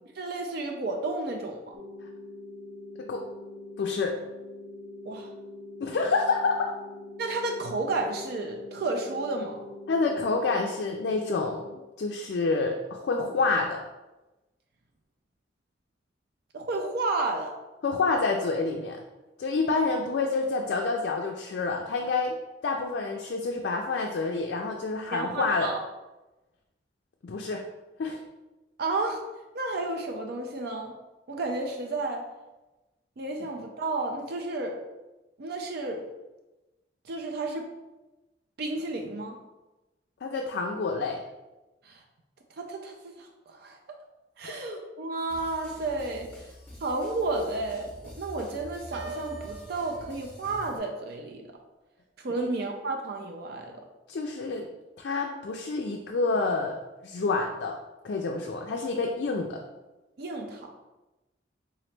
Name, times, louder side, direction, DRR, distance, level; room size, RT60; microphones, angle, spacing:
voice 1, 0.2-1.7 5.0-5.3 7.2-9.6 16.5-17.5 25.1-25.8 28.8-29.2 29.5-30.9 31.3-32.3 33.2-34.8 35.4-36.0 37.1-37.7 38.6-39.4 41.8-42.0 42.6-43.8 44.4-46.3 46.8-51.5 52.2-53.8 60.2-60.7, right 2 dB, 55° right, 2 dB, 0.4 m, -32 dB
sound 1, 1.7-11.7, left 2 dB, 35° right, 0.8 m, -43 dB
voice 2, 3.8-4.1 5.8-6.7 9.9-11.6 12.0-13.8 17.8-19.0 19.4-22.3 22.6-25.7 27.2-27.6 28.0-28.2 40.2-41.2 44.5-44.6 52.3-52.5 54.1-54.7 55.0-56.8 57.0-57.8 58.0-59.6, left 3 dB, 60° left, 1 dB, 0.4 m, -28 dB
sound 2, 45.3-50.8, equal, 10° left, 0.8 m, -47 dB
Piano, 48.9-50.8, right 3 dB, 90° right, 0.7 m, -41 dB
3.7 x 3.0 x 3.2 m, 1.1 s
head